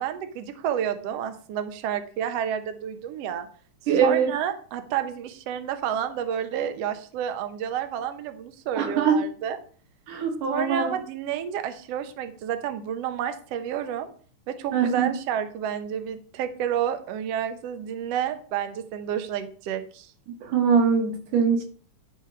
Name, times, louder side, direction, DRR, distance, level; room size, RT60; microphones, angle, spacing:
voice 1, 0.0-3.5 4.0-9.6 10.5-14.1 14.5-20.1, right 9 dB, 65° right, 1.7 m, -30 dB
voice 2, 3.9-4.3 8.8-9.2 10.1-11.0 14.7-15.1 20.4-21.6, right 6 dB, 85° right, 3.1 m, -22 dB
10.5 x 4.5 x 4.8 m
omnidirectional pair, 3.5 m